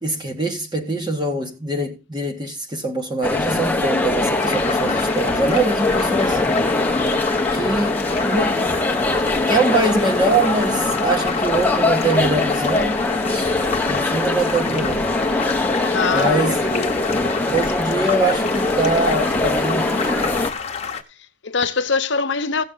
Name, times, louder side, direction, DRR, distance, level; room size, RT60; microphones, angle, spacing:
voice 1, 0.0-6.4 7.5-8.7 9.5-13.0 13.3-13.5 13.8-15.1 16.1-16.6 17.5-20.3, right 2 dB, 20° right, 1.6 m, -23 dB
sound 1, 3.2-20.5, left 2 dB, 10° left, 0.9 m, -22 dB
sound 2, 4.4-21.0, left 5 dB, 30° left, 1.1 m, -30 dB
voice 2, 15.9-16.9 21.2-22.6, left 4 dB, 65° left, 0.9 m, -23 dB
16.5 x 6.5 x 3.9 m
head